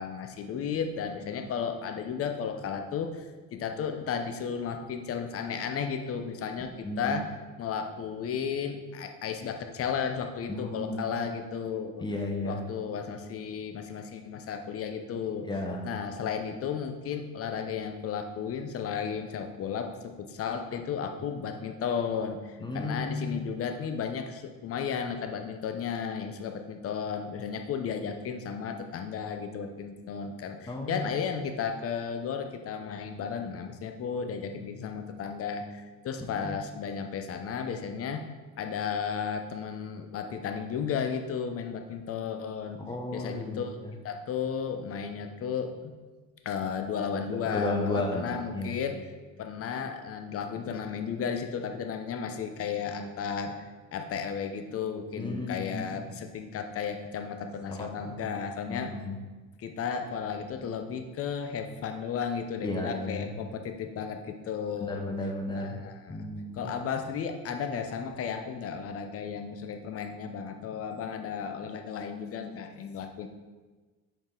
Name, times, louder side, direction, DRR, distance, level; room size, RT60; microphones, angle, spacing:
voice 1, 0.0-7.3 7.6-12.0 12.4-15.5 15.8-38.2 38.6-42.8 43.1-43.8 44.0-45.9 46.4-49.0 49.4-53.5 53.9-58.9 59.6-65.1 65.5-66.3 66.5-73.3, left 6 dB, 45° left, 6 dB, 0.8 m, -34 dB
voice 2, 6.8-7.2 10.5-11.1 12.0-12.6 15.5-15.9 21.3-21.4 22.6-23.5 30.7-31.1 36.2-36.6 42.8-43.9 47.3-48.8 55.1-56.1 57.7-58.2 58.7-59.2 62.6-63.3 64.8-65.8 66.1-66.7, left 2 dB, 15° left, 2 dB, 1.1 m, -34 dB
7.4 x 5.1 x 3.9 m, 1.3 s
cardioid pair, 115°, 32 cm